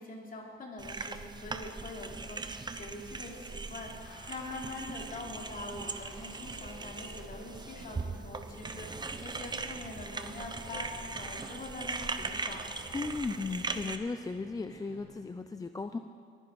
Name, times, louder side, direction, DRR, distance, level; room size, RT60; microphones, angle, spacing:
voice 1, 0.0-12.8, left 2 dB, 45° left, -1 dB, 3.0 m, -44 dB
sound 1, 0.8-14.0, right 4 dB, 20° right, 0.8 m, -40 dB
sound 2, 3.1-15.1, left 2 dB, 80° left, 4.1 m, -54 dB
voice 2, 12.9-16.0, left 3 dB, 20° left, 8 dB, 0.5 m, -36 dB
21.5 x 10.0 x 4.7 m, 2.2 s
cardioid pair, 100°, 20 cm